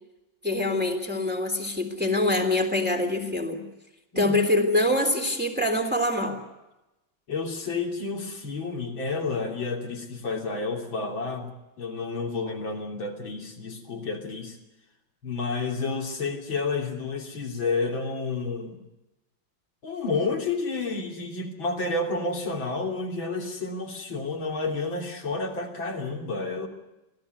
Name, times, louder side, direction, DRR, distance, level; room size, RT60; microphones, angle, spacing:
voice 1, 0.4-3.6 4.1-6.4, left 1 dB, 5° right, 3 dB, 3.3 m, -24 dB
voice 2, 7.3-11.5 11.8-14.6 15.2-18.8 19.8-26.7, left 3 dB, 80° left, 1 dB, 4.0 m, -30 dB
25.5 x 16.5 x 9.4 m, 0.98 s
omnidirectional pair, 2.1 m